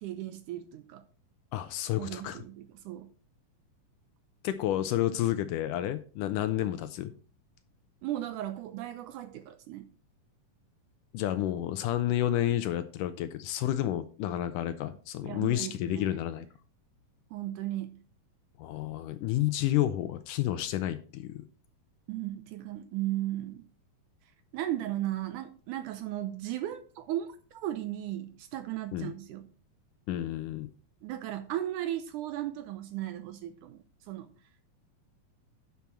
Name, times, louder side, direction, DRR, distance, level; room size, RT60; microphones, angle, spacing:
voice 1, 0.0-1.1 2.0-3.1 8.0-9.9 15.2-16.2 17.3-18.0 22.1-23.6 24.5-29.5 31.0-34.3, right 13 dB, 80° right, 2.0 m, -36 dB
voice 2, 1.5-2.4 4.4-7.1 11.1-16.5 18.6-21.4 28.9-29.1 30.1-30.7, left 13 dB, 80° left, 2.0 m, -30 dB
10.5 x 6.2 x 4.3 m
omnidirectional pair, 4.1 m